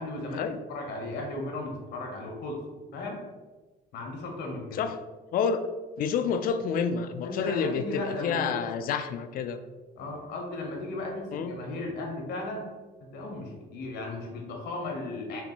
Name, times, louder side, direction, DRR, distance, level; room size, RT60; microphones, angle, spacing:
voice 1, 0.0-2.6 2.9-3.2 3.9-4.8 7.2-8.6 10.0-12.6 13.1-15.4, left 2 dB, 75° left, 1 dB, 1.1 m, -35 dB
voice 2, 5.3-5.6 6.0-9.6 11.3-11.6, left 6 dB, 60° left, 9 dB, 0.4 m, -29 dB
4.2 x 2.1 x 4.3 m, 1.2 s
cardioid pair, 110°, 17 cm